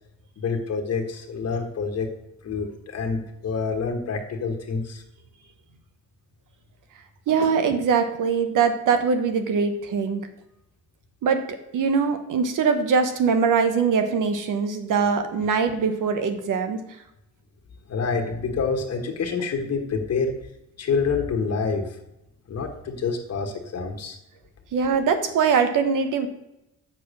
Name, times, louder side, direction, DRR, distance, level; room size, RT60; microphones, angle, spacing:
voice 1, 0.4-2.1 2.4-5.0 17.9-20.3 20.8-22.0 22.5-24.2, left 5 dB, 55° left, 3 dB, 1.4 m, -27 dB
voice 2, 7.3-10.2 11.2-11.4 11.7-16.8 24.7-26.3, right 5 dB, 85° right, 8 dB, 1.4 m, -22 dB
8.1 x 6.8 x 6.3 m, 0.88 s
cardioid pair, 135°, 31 cm